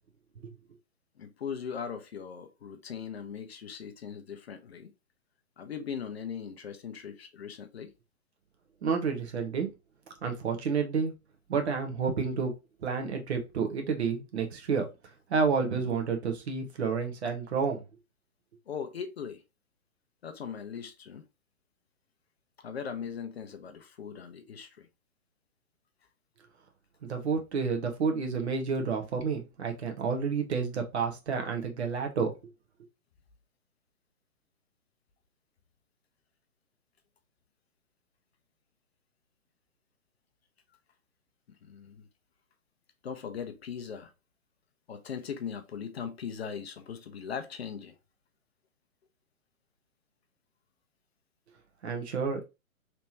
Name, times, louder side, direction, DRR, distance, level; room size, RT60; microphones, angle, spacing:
voice 1, 1.2-4.9 5.6-7.9 18.7-19.4 20.2-21.3 22.6-24.9 41.6-42.1 43.0-44.1 44.9-48.0, left 7 dB, 45° left, 0.6 m, -39 dB
voice 2, 8.8-9.7 10.2-11.1 11.5-12.5 12.8-14.9 15.3-17.8 27.0-32.3 51.8-52.5, right 5 dB, 50° right, 1.1 m, -30 dB
3.4 x 2.9 x 2.9 m
figure-of-eight pair, 130°, 43 cm